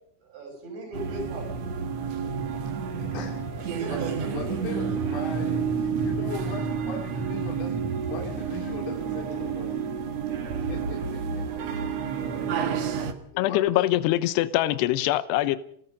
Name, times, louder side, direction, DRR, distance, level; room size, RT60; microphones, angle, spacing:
voice 1, 0.2-1.5 2.1-2.3 3.6-4.4, right 2 dB, 60° right, 2 dB, 8.7 m, -38 dB
sound 1, 0.9-13.1, right 6 dB, 80° right, 1.5 m, -30 dB
voice 2, 3.1-3.4 3.9-4.0 4.3-9.8 10.7-12.1 13.0-13.8, left 5 dB, 55° left, 0 dB, 4.5 m, -39 dB
voice 3, 13.4-15.6, left 15 dB, 75° left, 14 dB, 2.5 m, -23 dB
29.5 x 18.0 x 5.3 m, 0.68 s
omnidirectional pair, 5.7 m